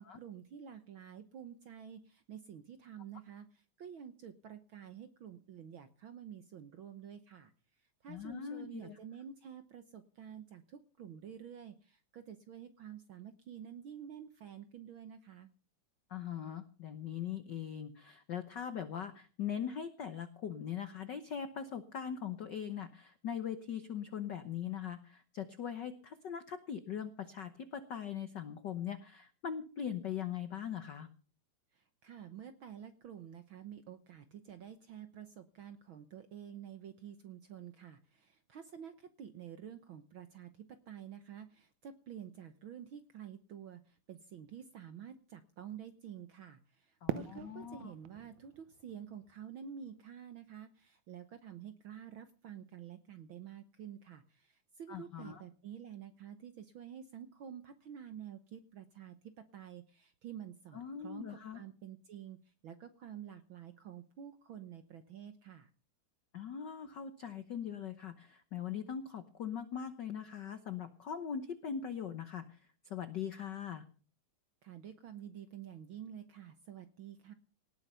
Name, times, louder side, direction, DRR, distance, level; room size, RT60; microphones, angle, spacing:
voice 1, 0.0-7.5 8.0-15.5 31.7-65.7 74.6-77.3, right 9 dB, 65° right, 10 dB, 1.3 m, -49 dB
voice 2, 8.1-9.0 16.1-31.1 47.0-47.9 54.9-55.4 60.7-61.6 66.3-72.6 72.8-73.8, left 8 dB, 90° left, 10 dB, 0.9 m, -41 dB
Fireworks, 47.1-50.1, right 12 dB, 85° right, 2.3 m, -43 dB
18.5 x 9.5 x 5.6 m, 0.39 s
omnidirectional pair, 3.4 m